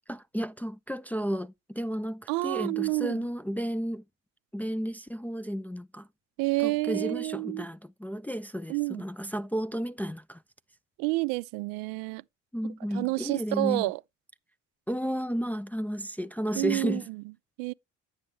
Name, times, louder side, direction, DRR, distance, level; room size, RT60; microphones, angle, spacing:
voice 1, 0.1-4.0 4.5-6.1 6.6-10.4 12.5-13.9 14.9-17.1, equal, 5° left, 0.4 m, -33 dB
voice 2, 2.3-3.2 6.4-7.6 8.7-9.0 11.0-12.2 12.9-14.0 16.6-17.2 17.6-17.7, right 23 dB, 70° right, 0.5 m, -29 dB
10.0 x 6.7 x 3.1 m
hypercardioid pair, 55°, 36 cm